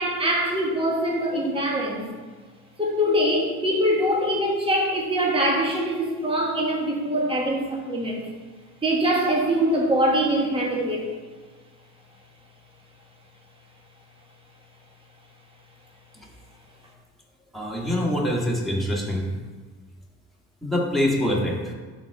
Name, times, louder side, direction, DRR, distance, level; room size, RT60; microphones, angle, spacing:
voice 1, 0.0-2.1 2.8-8.3 8.8-11.0, equal, 20° right, -2 dB, 1.7 m, -23 dB
voice 2, 17.5-19.2 20.6-21.7, left 1 dB, ahead, -3 dB, 1.9 m, -24 dB
11.0 x 4.3 x 3.6 m, 1.4 s
cardioid pair, 90°, 30 cm